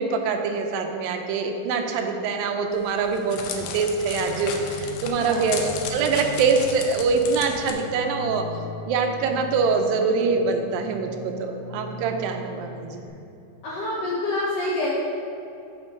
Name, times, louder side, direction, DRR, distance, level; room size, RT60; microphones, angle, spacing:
voice 1, 0.0-8.5 8.9-13.0, right 4 dB, 80° right, 4 dB, 2.3 m, -24 dB
Crackle, 2.7-7.7, left 6 dB, 85° left, 2.3 m, -35 dB
sound 1, 4.0-13.1, left 1 dB, 65° right, 2.9 m, -39 dB
voice 2, 5.2-5.5 13.6-14.9, left 2 dB, 65° left, -7 dB, 1.6 m, -27 dB
8.7 x 4.4 x 5.2 m, 2.7 s
omnidirectional pair, 4.1 m